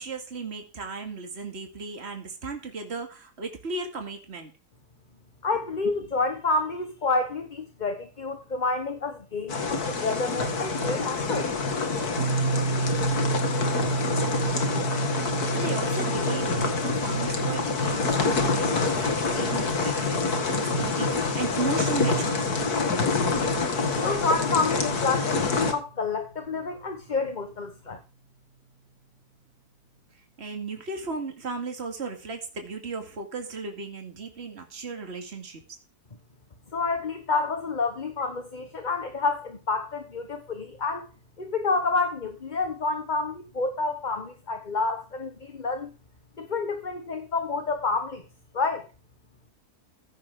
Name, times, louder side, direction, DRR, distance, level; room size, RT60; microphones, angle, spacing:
voice 1, 0.0-4.5 5.8-5.9 15.5-22.7 30.1-35.8, right 4 dB, 40° right, 2.5 m, -36 dB
voice 2, 5.4-11.5 24.0-28.0 36.7-41.1 41.4-45.9 46.4-48.2 48.5-48.9, left 3 dB, 30° left, 1.2 m, -29 dB
sound 1, 9.5-25.7, left 4 dB, 70° left, 2.5 m, -26 dB
sound 2, 12.2-25.1, right 3 dB, 75° right, 3.0 m, -32 dB
15.5 x 10.5 x 3.7 m
omnidirectional pair, 1.7 m